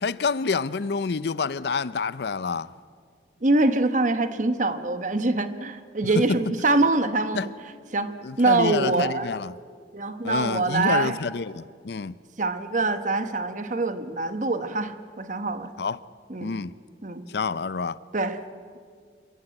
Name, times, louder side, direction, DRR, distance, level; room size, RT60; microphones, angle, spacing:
voice 1, 0.0-2.7 7.3-7.5 8.2-9.5 10.2-12.1 15.8-16.0 16.4-16.7 17.3-18.0, left 5 dB, 60° left, 0.5 m, -28 dB
voice 2, 3.4-7.5 7.9-9.3 9.9-11.2 12.4-15.7 16.3-16.5 17.0-17.3 18.1-18.4, right 2 dB, 45° right, 1.1 m, -24 dB
27.0 x 15.5 x 8.8 m
head